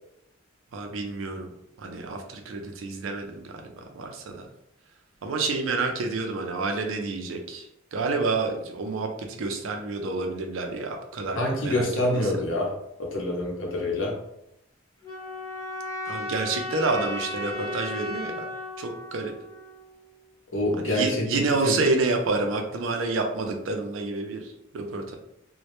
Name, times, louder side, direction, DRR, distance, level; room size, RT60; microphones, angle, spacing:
voice 1, 0.7-1.5 1.8-4.5 5.2-7.6 7.9-12.3 16.1-18.5 18.8-19.3 20.8-25.1, right 3 dB, 80° right, 4 dB, 0.4 m, -29 dB
voice 2, 11.4-14.2 20.5-21.8, left 1 dB, 80° left, 0 dB, 0.7 m, -27 dB
sound 1, 15.0-20.1, left 1 dB, 15° left, 0.6 m, -35 dB
2.1 x 2.0 x 2.9 m, 0.80 s
head